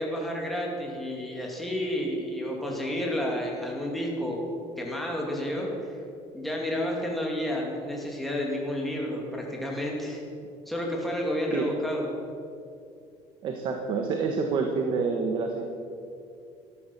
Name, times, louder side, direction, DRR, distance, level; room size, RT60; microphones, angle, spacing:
voice 1, 0.0-6.0 6.3-10.2 10.7-12.1, left 1 dB, ahead, -2 dB, 2.6 m, -31 dB
voice 2, 13.4-15.6, right 5 dB, 45° right, 3 dB, 1.3 m, -27 dB
13.5 x 12.0 x 7.3 m, 2.5 s
cardioid pair, 170°, 12 cm